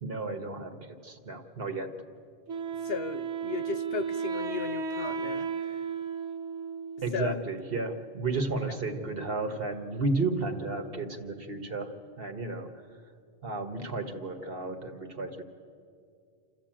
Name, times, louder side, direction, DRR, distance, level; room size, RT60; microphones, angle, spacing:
voice 1, 0.0-1.9 7.0-11.9 12.2-12.7 13.4-15.4, right 3 dB, 55° right, 5 dB, 1.6 m, -33 dB
Wind instrument woodwind instrument, 2.5-7.3, right 5 dB, 75° right, 1.3 m, -34 dB
voice 2, 2.8-5.8 7.1-7.4, left 5 dB, 65° left, 13 dB, 0.9 m, -36 dB
27.5 x 14.0 x 8.9 m, 2.4 s
omnidirectional pair, 1.2 m